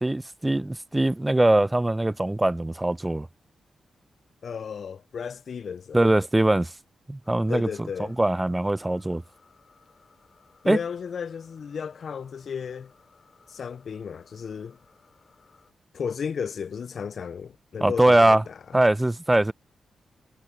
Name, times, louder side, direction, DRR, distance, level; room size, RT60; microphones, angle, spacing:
voice 1, 0.0-3.3 5.9-6.7 7.1-7.9 8.2-9.2 10.7-10.8 17.8-18.4 18.7-19.5, right 1 dB, 15° right, 0.6 m, -22 dB
voice 2, 4.4-6.1 7.5-8.1 10.6-12.9 13.5-14.8 15.9-18.8, left 6 dB, 65° left, 0.3 m, -34 dB
sound 1, 7.2-15.7, left 4 dB, 50° left, 5.1 m, -60 dB
cardioid pair, 55°, 0 cm